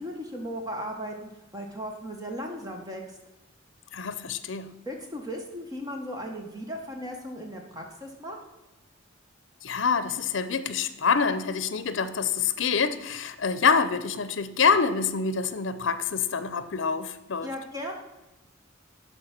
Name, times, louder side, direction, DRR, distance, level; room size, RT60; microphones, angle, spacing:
voice 1, 0.0-3.0 4.9-8.4 17.4-17.9, equal, 20° right, 1 dB, 1.1 m, -36 dB
voice 2, 3.9-4.7 9.6-17.5, left 5 dB, 70° left, 13 dB, 0.6 m, -26 dB
11.5 x 4.6 x 5.9 m, 1.1 s
head